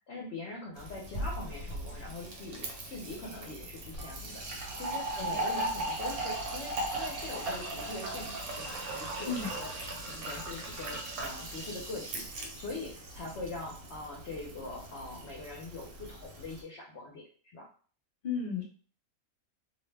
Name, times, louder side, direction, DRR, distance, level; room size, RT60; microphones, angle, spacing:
voice 1, 0.1-9.7 10.1-17.2 17.5-17.7, left 2 dB, 60° left, -2 dB, 0.8 m, -43 dB
Fill (with liquid), 0.8-16.6, right 2 dB, 75° right, 1.1 m, -38 dB
voice 2, 18.2-18.6, left 5 dB, 35° left, -3 dB, 0.9 m, -33 dB
2.6 x 2.1 x 3.2 m, 0.43 s
omnidirectional pair, 1.5 m